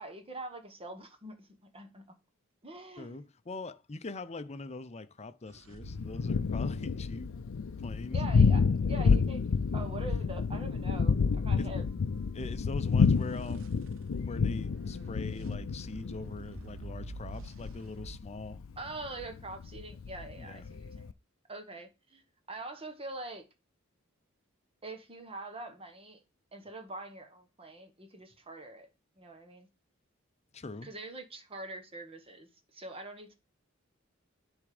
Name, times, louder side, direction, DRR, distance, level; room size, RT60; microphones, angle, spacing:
voice 1, 0.0-1.5 1.7-2.0 2.6-3.2 8.1-9.4 9.7-11.8 18.8-21.1 21.5-22.2 22.5-23.4 24.8-26.2 26.5-28.9 29.2-29.7 30.8-33.3, right 2 dB, 30° right, 1.3 m, -44 dB
voice 2, 3.0-7.3 7.8-8.2 9.0-9.2 11.6-11.7 12.3-13.8 14.1-18.6 20.4-20.7 30.5-30.9, left 3 dB, 35° left, 0.6 m, -42 dB
sound 1, 5.5-9.6 12.9-18.2, right 3 dB, 80° right, 0.6 m, -51 dB
Thunder, 5.8-21.1, left 5 dB, 80° left, 0.5 m, -29 dB
10.5 x 3.6 x 4.9 m
head